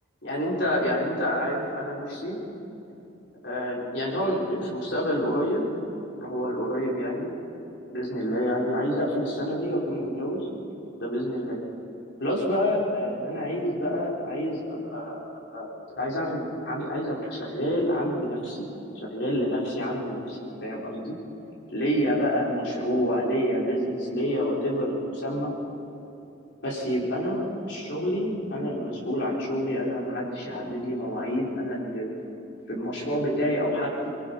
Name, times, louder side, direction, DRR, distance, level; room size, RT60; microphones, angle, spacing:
voice 1, 0.2-2.4 3.4-5.6 6.1-7.3 7.8-10.5 11.0-11.6 12.2-15.2 15.5-15.7 16.0-18.7 18.9-21.2 21.7-25.5 26.6-32.1 32.7-34.1, equal, 60° left, -5 dB, 4.8 m, -28 dB
25.0 x 22.0 x 5.6 m, 2.9 s
head